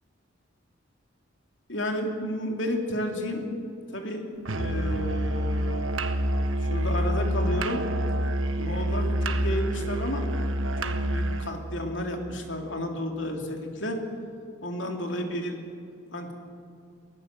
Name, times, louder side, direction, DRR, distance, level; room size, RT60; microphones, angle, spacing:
voice 1, 1.7-3.5 3.9-4.2 4.5-5.9 6.6-7.8 8.6-10.3 10.8-14.0 14.6-15.6 16.1-16.3, left 1 dB, 60° left, 3 dB, 2.9 m, -32 dB
Musical instrument, 4.5-11.6, equal, 75° right, 1.4 m, -27 dB
23.5 x 17.5 x 7.6 m, 2.4 s
head